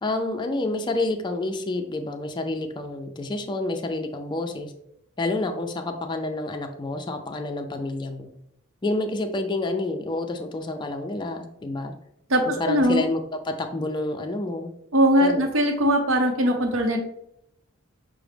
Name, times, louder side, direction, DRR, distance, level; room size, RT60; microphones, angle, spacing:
voice 1, 0.0-4.7 5.2-8.3 8.8-11.9 12.5-14.7 15.2-15.5, left 2 dB, 20° left, 5 dB, 0.4 m, -29 dB
voice 2, 12.3-13.1 14.9-17.0, equal, 70° right, 3 dB, 0.7 m, -20 dB
5.8 x 2.0 x 3.3 m, 0.75 s
head